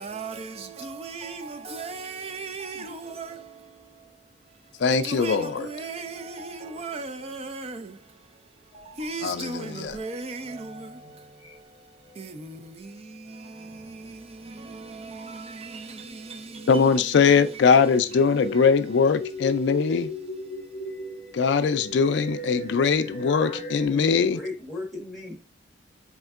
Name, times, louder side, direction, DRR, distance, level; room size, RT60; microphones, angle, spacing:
voice 1, 0.0-17.7 18.5-18.6, right 3 dB, 30° right, 0.4 m, -38 dB
voice 2, 4.8-5.7 9.2-10.0 16.7-20.1 21.3-24.4, left 5 dB, 65° left, 0.4 m, -21 dB
sound 1, 8.7-9.3 9.9-10.0 11.4-11.8 12.1-13.0 14.3-23.9, equal, 25° left, 0.7 m, -39 dB
voice 3, 23.2-25.3, left 2 dB, ahead, 1.3 m, -37 dB
4.2 x 3.6 x 2.4 m
head